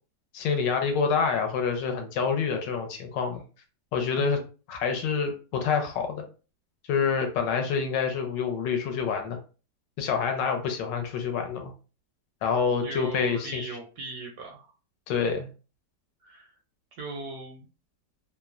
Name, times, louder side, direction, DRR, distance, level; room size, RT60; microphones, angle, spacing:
voice 1, 0.3-3.4 3.9-4.4 4.7-6.2 6.9-9.4 10.0-11.7 12.4-13.8 15.1-15.5, left 6 dB, 75° left, 5 dB, 1.2 m, -27 dB
voice 2, 12.7-14.7 16.2-16.5 17.0-17.7, right 3 dB, 75° right, 1 dB, 0.9 m, -38 dB
3.0 x 2.1 x 2.3 m, 0.35 s
omnidirectional pair, 2.0 m